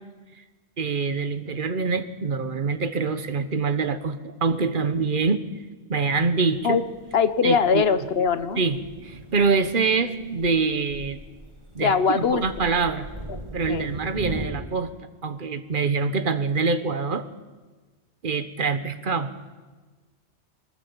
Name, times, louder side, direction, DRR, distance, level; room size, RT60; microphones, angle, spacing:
voice 1, 0.8-5.4 5.9-6.8 7.4-7.8 8.6-11.2 11.7-13.1 13.5-14.9 15.2-17.3 18.2-19.3, right 4 dB, 45° right, 10 dB, 1.2 m, -25 dB
Thunder, 6.5-14.5, right 1 dB, 25° right, 1.7 m, -39 dB
voice 2, 7.1-8.6 11.8-12.4 13.7-13.8, left 6 dB, 60° left, 12 dB, 1.1 m, -21 dB
22.0 x 19.5 x 7.3 m, 1.3 s
omnidirectional pair, 1.2 m